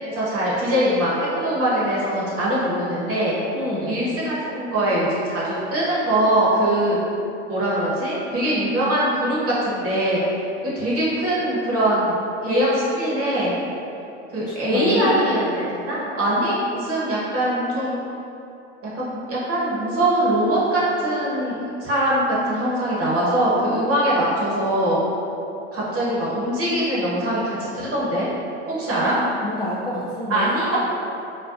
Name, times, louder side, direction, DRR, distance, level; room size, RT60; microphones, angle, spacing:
voice 1, 0.0-3.3 3.8-7.0 7.5-10.2 10.6-12.2 12.4-13.5 14.3-18.0 18.9-25.0 25.7-28.3 28.7-29.2 30.3-30.8, right 1 dB, 40° right, -7 dB, 1.3 m, -22 dB
voice 2, 3.5-4.0 14.7-15.2 28.9-30.5, left 2 dB, 15° left, -8 dB, 0.3 m, -28 dB
4.4 x 2.2 x 2.6 m, 2.9 s
hypercardioid pair, 85°, 34 cm